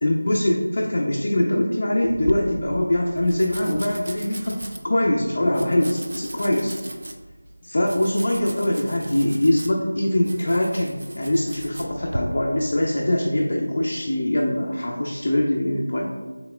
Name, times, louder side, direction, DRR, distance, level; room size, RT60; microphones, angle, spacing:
voice 1, 0.0-4.6 4.8-6.8 7.6-16.1, left 1 dB, 40° left, -2 dB, 0.4 m, -22 dB
Domestic sounds home sounds, 2.0-12.2, right 1 dB, 45° right, 0.4 m, -37 dB
4.0 x 3.5 x 2.2 m, 1.4 s
figure-of-eight pair, 175°, 0 cm